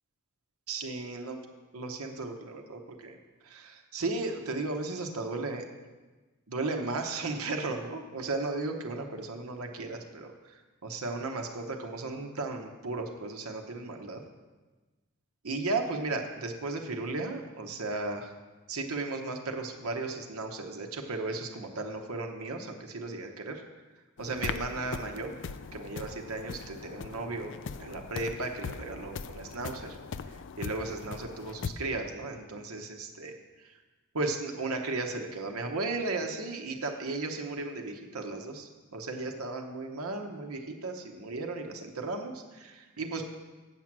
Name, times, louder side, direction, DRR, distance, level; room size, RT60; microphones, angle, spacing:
voice 1, 0.7-1.4 1.7-3.2 3.5-5.6 6.5-10.3 10.8-14.2 15.4-18.3 18.7-23.6 24.2-25.3 25.7-27.5 27.8-30.0 30.6-33.3 34.1-43.2, right 3 dB, 70° right, 3 dB, 0.9 m, -35 dB
sound 1, 24.2-31.7, left 5 dB, 55° left, 0.4 m, -40 dB
8.3 x 6.0 x 7.4 m, 1.2 s
head